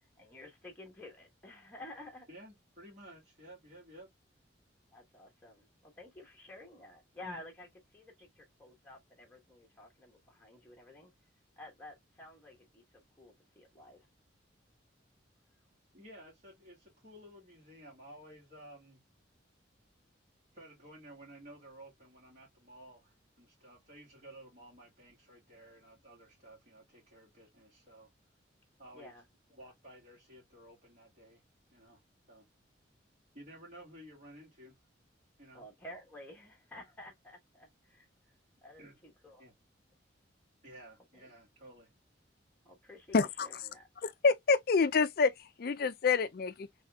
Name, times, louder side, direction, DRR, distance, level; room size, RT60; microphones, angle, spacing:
voice 1, 0.0-2.3 4.9-11.1 11.6-14.0 28.9-29.2 35.5-38.1 38.6-39.4 41.1-41.3 42.6-43.9, left 1 dB, 10° left, 1.2 m, -52 dB
voice 2, 2.3-4.1 15.9-19.0 20.5-28.1 28.8-29.1 29.5-31.4 31.7-32.0 32.3-32.4 33.3-34.8 35.4-35.6 38.8-39.0 39.4-39.5 40.6-41.9, right 1 dB, 40° right, 2.6 m, -54 dB
voice 3, 43.1-43.5 44.0-45.3 45.6-46.7, left 4 dB, 50° left, 0.4 m, -27 dB
4.1 x 3.4 x 2.3 m
head